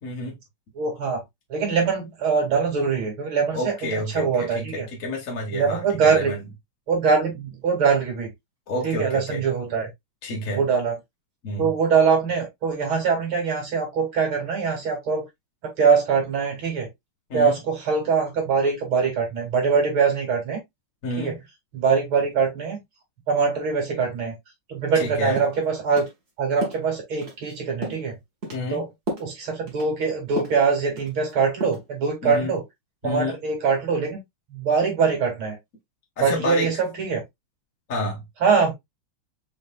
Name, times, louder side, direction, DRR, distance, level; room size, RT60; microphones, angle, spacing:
voice 1, 0.0-0.3 3.5-6.4 8.7-9.4 10.2-10.6 11.4-11.7 17.3-17.6 21.0-21.4 24.9-25.4 28.5-28.9 32.2-32.5 33.0-33.4 36.2-36.8 37.9-38.2, left 1 dB, 45° left, 1.6 m, -29 dB
voice 2, 0.8-1.2 1.5-4.9 5.5-6.3 6.9-8.3 8.8-9.9 10.5-10.9 11.6-15.2 15.8-16.9 17.3-20.6 21.2-21.3 21.7-22.8 23.3-24.3 24.7-26.1 26.4-28.2 28.7-28.8 29.2-32.6 33.0-34.2 34.5-35.6 36.2-37.2 38.4-38.7, right 5 dB, 80° right, 3.1 m, -23 dB
sound 1, 24.9-25.0 25.4-25.6 26.0-26.1 26.6-26.8 27.2-27.5 27.8-28.1 28.4-28.7 29.1-29.3 29.7-29.9 30.4-30.6 31.0-31.3 31.6-31.9, right 1 dB, 30° right, 1.8 m, -32 dB
6.4 x 3.3 x 2.2 m
omnidirectional pair, 2.3 m